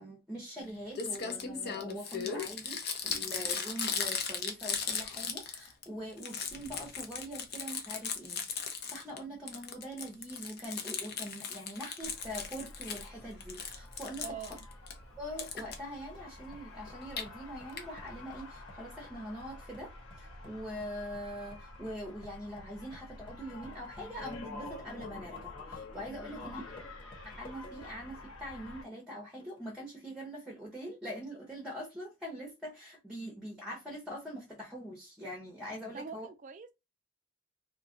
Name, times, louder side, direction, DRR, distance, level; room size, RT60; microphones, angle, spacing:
voice 1, 0.0-8.4 8.9-14.5 15.2-19.9 20.2-26.6 27.2-36.3, equal, 5° right, 0.7 m, -43 dB
Crumpling crinkling, 0.6-0.7 0.9-5.8 6.1-9.2 9.5-13.1 13.4-14.9 15.4-15.8 16.9-17.2 17.8-17.9 18.1-18.2 18.4-18.5, left 6 dB, 50° left, 0.6 m, -37 dB
sound 1, 12.0-28.8, left 2 dB, 85° left, 1.5 m, -48 dB
voice 2, 14.2-14.7 26.3-26.6 35.9-36.7, right 5 dB, 40° right, 0.3 m, -44 dB
sound 2, 16.1-28.1 28.5-28.6 29.4-30.0, equal, 25° left, 0.9 m, -57 dB
2.7 x 2.3 x 3.7 m
head